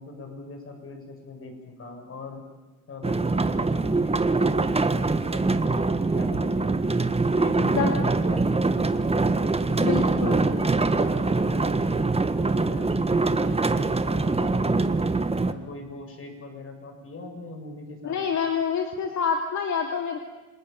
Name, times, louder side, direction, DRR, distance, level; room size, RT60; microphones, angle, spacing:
voice 1, 0.0-2.4 2.9-7.0 7.4-9.3 9.7-14.9 15.4-18.2, left 2 dB, 45° left, 4 dB, 7.3 m, -40 dB
sound 1, 3.0-15.5, right 3 dB, 20° right, 1.5 m, -23 dB
voice 2, 9.8-10.4 18.0-20.2, left 6 dB, 65° left, 4 dB, 2.7 m, -27 dB
28.0 x 20.5 x 9.3 m, 1.2 s
cardioid pair, 90°, 30 cm